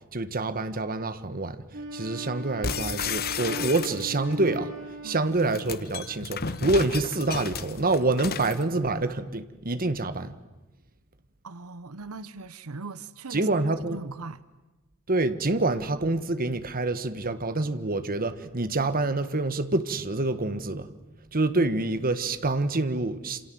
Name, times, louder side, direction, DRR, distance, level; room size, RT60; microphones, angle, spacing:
voice 1, 0.1-1.6 1.9-4.7 5.0-10.4 13.3-14.0 15.1-20.9 21.3-23.4, right 2 dB, 40° right, 1.5 m, -27 dB
Wind instrument woodwind instrument, 1.7-6.0, right 1 dB, 60° right, 7.1 m, -38 dB
sound 1, 2.6-4.3 5.3-8.6, left 6 dB, 45° left, 1.2 m, -33 dB
voice 2, 5.0-5.3 11.4-13.5 13.9-14.4, right 3 dB, 85° right, 1.0 m, -39 dB
27.5 x 27.5 x 7.8 m
head